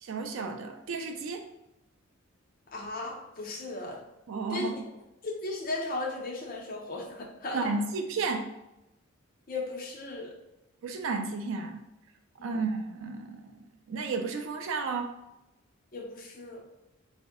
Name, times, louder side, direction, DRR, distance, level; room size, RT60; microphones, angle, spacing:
voice 1, 0.0-1.4 4.3-4.8 7.5-8.5 10.8-11.8 12.4-15.1, right 4 dB, 65° right, 5 dB, 0.3 m, -33 dB
voice 2, 2.7-4.0 4.5-4.8 5.2-7.7 9.5-10.3 12.4-12.6 15.9-16.6, left 2 dB, 40° left, 0 dB, 0.6 m, -36 dB
3.6 x 2.1 x 3.5 m, 0.92 s
head